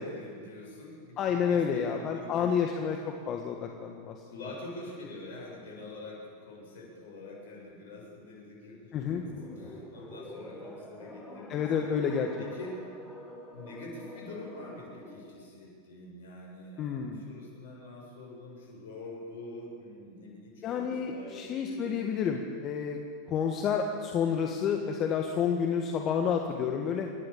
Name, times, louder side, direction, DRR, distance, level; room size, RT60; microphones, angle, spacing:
voice 1, 0.0-2.8 4.3-12.0 12.4-12.7 13.5-22.0, left 2 dB, 70° left, -2 dB, 7.7 m, -45 dB
voice 2, 1.2-4.2 8.9-9.3 11.5-12.3 16.8-17.2 20.6-23.0 23.3-27.1, left 7 dB, 40° left, 3 dB, 1.7 m, -29 dB
sound 1, 8.9-15.4, left 1 dB, 10° left, 5.4 m, -47 dB
27.5 x 11.5 x 8.7 m, 2.2 s
hypercardioid pair, 95°, 0 cm